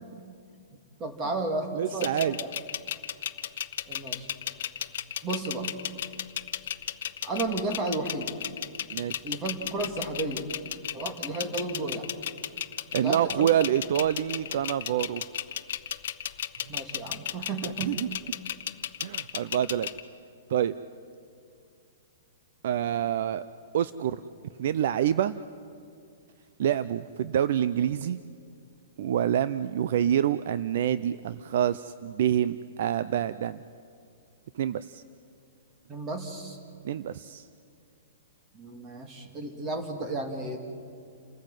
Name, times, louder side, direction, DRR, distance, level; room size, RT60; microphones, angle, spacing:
voice 1, 1.0-2.5 3.9-4.3 5.2-5.7 7.2-8.3 9.2-10.5 10.9-12.1 13.0-13.5 16.7-18.0 35.9-36.6 38.5-40.6, right 2 dB, 15° right, 5 dB, 2.3 m, -33 dB
voice 2, 1.7-2.4 8.9-9.1 12.9-15.2 17.8-18.1 19.0-19.9 20.5-20.7 22.6-23.4 23.7-24.2 24.6-25.3 26.6-28.2 29.0-33.6 34.6-35.0 36.8-37.5, right 10 dB, 50° right, 15 dB, 0.5 m, -27 dB
sound 1, 2.0-20.0, left 10 dB, 55° left, 1.1 m, -34 dB
29.0 x 14.5 x 9.1 m, 2.4 s
hypercardioid pair, 170°, 0 cm